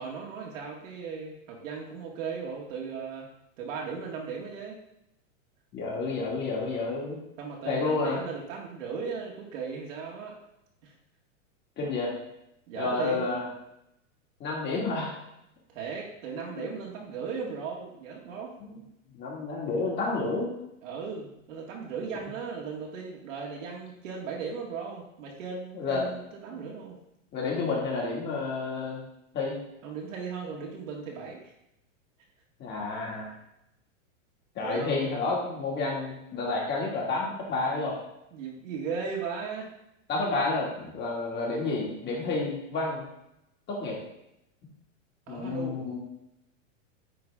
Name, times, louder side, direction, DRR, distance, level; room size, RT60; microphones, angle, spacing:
voice 1, 0.0-3.3 3.6-4.8 7.4-10.4 10.8-10.9 12.7-13.3 15.7-18.5 20.8-27.0 29.8-31.5 34.6-35.0 38.3-39.7 45.3-45.9, right 5 dB, 70° right, -2 dB, 2.0 m, -37 dB
voice 2, 5.7-7.2 7.7-8.2 11.8-12.1 12.7-13.5 14.4-15.2 16.3-16.7 18.6-18.8 19.1-20.6 25.7-26.1 26.5-26.6 27.3-29.0 29.3-29.5 32.6-33.3 34.6-38.0 40.1-43.0 43.7-44.0 45.3-46.0, left 3 dB, 25° left, -3 dB, 2.3 m, -30 dB
9.3 x 4.0 x 3.7 m, 0.84 s
supercardioid pair, 140°, 39 cm